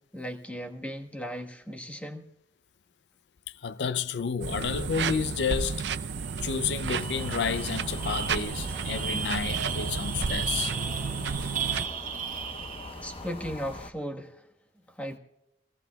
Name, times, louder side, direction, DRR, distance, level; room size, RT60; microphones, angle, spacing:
voice 1, 0.1-2.3 13.0-14.5 14.9-15.2, equal, 10° left, 1.3 m, -37 dB
voice 2, 3.5-5.9 6.4-10.7, left 6 dB, 70° left, 0.5 m, -30 dB
sound 1, 4.4-11.9, right 5 dB, 70° right, 0.6 m, -32 dB
sound 2, 6.3-6.4 6.7-13.1, right 8 dB, 50° right, 1.1 m, -36 dB
sound 3, 6.9-13.9, left 2 dB, 30° left, 0.9 m, -42 dB
27.0 x 17.5 x 2.3 m
head